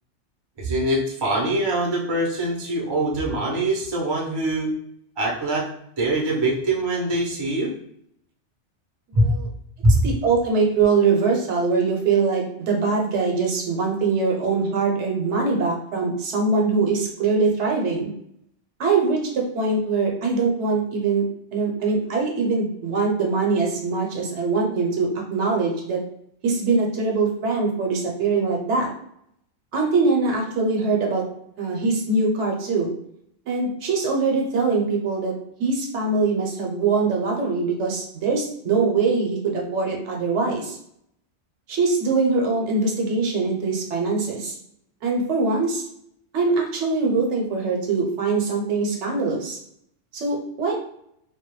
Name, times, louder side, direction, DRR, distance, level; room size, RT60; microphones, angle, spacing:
voice 1, 0.6-4.7 5.2-5.7 6.0-7.7 9.1-9.3 9.8-10.0, right 1 dB, 35° right, -3 dB, 0.4 m, -23 dB
voice 2, 9.1-9.5 10.0-18.1 18.8-21.3 21.5-26.0 26.4-28.9 29.7-31.2 31.6-32.9 33.5-35.3 35.6-40.8 41.7-44.5 45.0-45.8 46.3-49.6 50.1-50.7, right 4 dB, 75° right, 0 dB, 0.9 m, -22 dB
2.2 x 2.1 x 3.0 m, 0.74 s
omnidirectional pair, 1.2 m